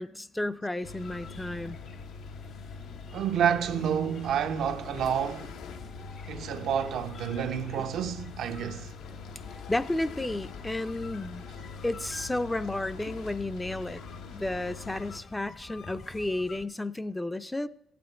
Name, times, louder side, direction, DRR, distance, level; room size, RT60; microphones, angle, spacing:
voice 1, 0.0-1.8 7.8-7.9 9.7-11.4 11.8-14.0 14.3-17.7, left 1 dB, 10° left, 0.5 m, -32 dB
sound 1, 0.8-15.2, left 5 dB, 85° left, 1.0 m, -44 dB
sound 2, 1.0-16.7, left 5 dB, 50° left, 1.0 m, -48 dB
voice 2, 3.1-5.6 6.3-8.9, right 8 dB, 75° right, 0.8 m, -29 dB
14.5 x 8.6 x 4.4 m
cardioid pair, 90°, 0 cm